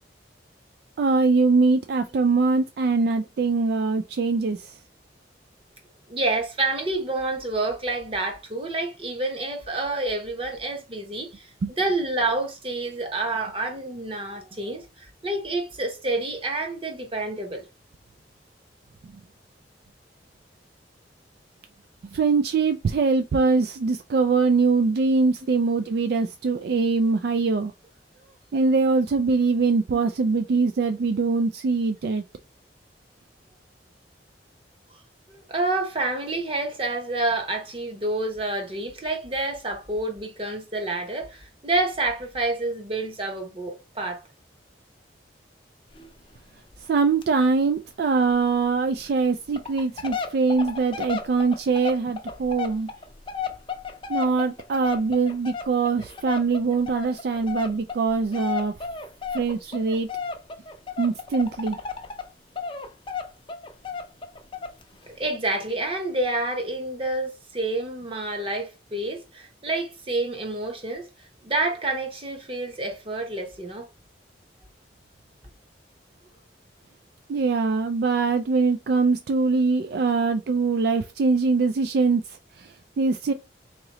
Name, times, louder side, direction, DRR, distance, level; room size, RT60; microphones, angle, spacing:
voice 1, 1.0-4.7 11.6-11.7 22.1-27.7 28.5-32.2 46.9-52.9 54.1-58.7 59.3-60.1 61.0-61.8 77.3-83.3, right 4 dB, 60° right, 0.3 m, -23 dB
voice 2, 6.1-11.5 11.8-17.6 25.4-25.6 35.3-44.2 65.2-73.9, right 2 dB, 30° right, 1.0 m, -28 dB
sound 1, 45.9-46.1 46.3-46.4 46.7-46.9 47.2-47.3 47.7-47.8 48.3-48.4 49.0-49.1 49.5-62.3 62.6-64.8 65.2-65.3, left 6 dB, 30° left, 0.5 m, -34 dB
3.7 x 3.0 x 3.0 m
head